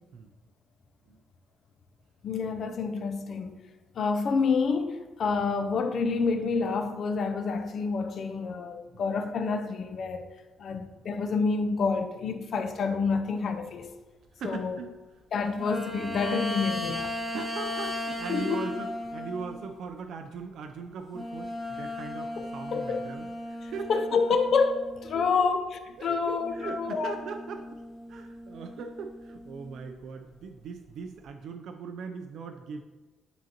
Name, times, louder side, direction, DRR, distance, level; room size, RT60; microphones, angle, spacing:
voice 1, 2.2-3.6 4.0-10.3 10.6-13.9 14.4-14.8 15.3-17.1 18.3-18.7 22.4-23.0 23.6-27.2, left 4 dB, 55° left, 0.5 m, -28 dB
voice 2, 14.4-14.9 16.9-23.9 25.1-25.5 26.0-27.8 28.1-32.8, right 5 dB, 70° right, 0.5 m, -40 dB
sound 1, 15.6-19.8 21.1-25.4 26.4-29.9 30.4-30.5, left 1 dB, 5° right, 1.1 m, -37 dB
10.0 x 3.8 x 2.9 m
cardioid pair, 120°, 0 cm